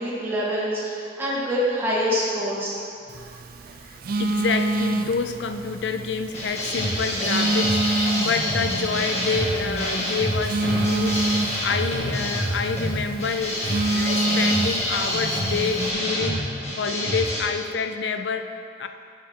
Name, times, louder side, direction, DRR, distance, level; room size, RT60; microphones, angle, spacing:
voice 1, 0.0-2.9 3.1-3.3, equal, 15° right, -8 dB, 1.7 m, -26 dB
Telephone, 3.1-15.9, right 2 dB, 55° right, 0.4 m, -28 dB
voice 2, 3.8-16.4 16.8-18.9, left 5 dB, 85° left, 8 dB, 0.5 m, -28 dB
sound 1, 6.3-17.4, equal, 40° left, 2.0 m, -27 dB
8.6 x 7.3 x 3.7 m, 2.4 s
head